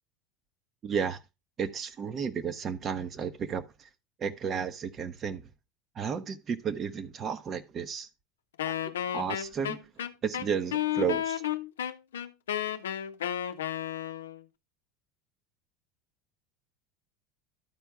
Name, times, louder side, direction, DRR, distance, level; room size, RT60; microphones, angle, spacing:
voice 1, 0.8-1.2 1.6-3.7 4.2-5.4 6.0-8.1 8.7-9.8 10.2-11.4, right 7 dB, 35° right, 0.9 m, -33 dB
Wind instrument woodwind instrument, 8.6-14.4, left 11 dB, 90° left, 0.5 m, -32 dB
12.5 x 4.5 x 3.5 m
hypercardioid pair, 95°, 0 cm